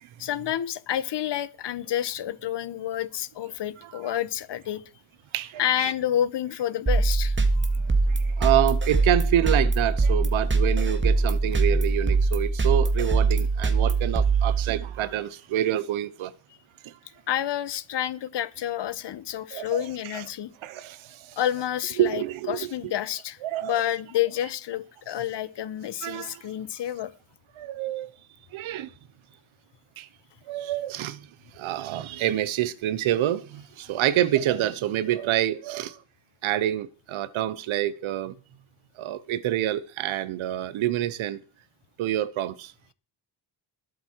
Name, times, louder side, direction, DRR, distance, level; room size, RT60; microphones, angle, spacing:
voice 1, 0.2-4.8 5.6-7.7 17.3-20.5 21.4-27.1, left 11 dB, 60° left, 1.3 m, -29 dB
voice 2, 5.3-5.9 7.8-16.3 16.8-16.9 19.5-19.8 20.1-20.2 20.6-21.4 22.0-22.7 23.4-23.8 26.0-26.4 27.6-28.1 28.5-28.9 30.0-30.1 30.5-31.3 31.5-36.0 36.4-38.3 39.0-41.4 42.0-42.7, right 12 dB, 90° right, 1.1 m, -27 dB
sound 1, 6.9-15.0, right 3 dB, 25° right, 2.2 m, -23 dB
21.0 x 8.1 x 4.7 m
cardioid pair, 120°, 46 cm